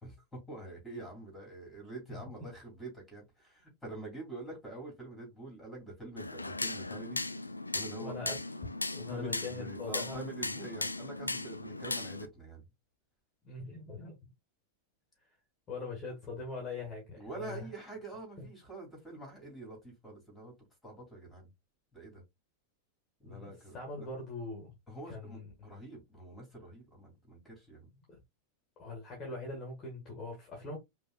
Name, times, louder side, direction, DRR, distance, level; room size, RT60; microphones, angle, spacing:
voice 1, 0.0-7.2 7.7-8.2 9.1-12.6 17.2-20.5 20.8-21.5 21.9-22.2 23.2-24.1 24.9-27.9, right 2 dB, 5° left, 3.0 m, -46 dB
sound 1, 6.2-12.3, left 2 dB, 85° left, 0.3 m, -37 dB
voice 2, 8.0-8.4 8.9-10.2 13.4-14.2 15.7-17.7 18.4-18.5 23.2-24.8 25.1-25.7 27.9-28.2 28.8-30.8, left 3 dB, 30° left, 1.8 m, -42 dB
5.2 x 2.9 x 2.4 m
figure-of-eight pair, 90°, 0 cm